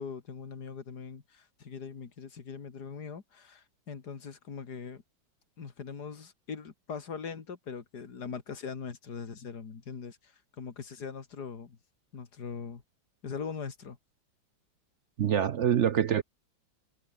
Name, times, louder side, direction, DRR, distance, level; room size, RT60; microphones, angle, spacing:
voice 1, 0.0-5.0 5.6-11.8 12.1-12.8 13.2-14.0, left 6 dB, 60° left, 2.7 m, -41 dB
voice 2, 15.2-16.2, right 9 dB, 65° right, 0.7 m, -25 dB
omnidirectional pair, 2.0 m